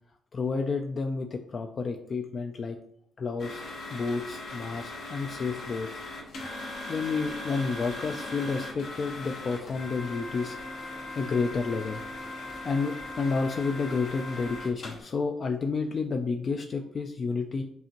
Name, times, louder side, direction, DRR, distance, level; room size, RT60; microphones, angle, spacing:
voice 1, 0.3-2.8 3.2-3.6 3.9-6.0 6.9-10.6 11.2-12.0 12.6-17.6, left 4 dB, 45° left, 4 dB, 0.3 m, -30 dB
sound 1, 3.4-15.0, left 2 dB, 65° left, 1.0 m, -39 dB
5.3 x 2.5 x 2.9 m, 0.73 s
cardioid pair, 90°, 0 cm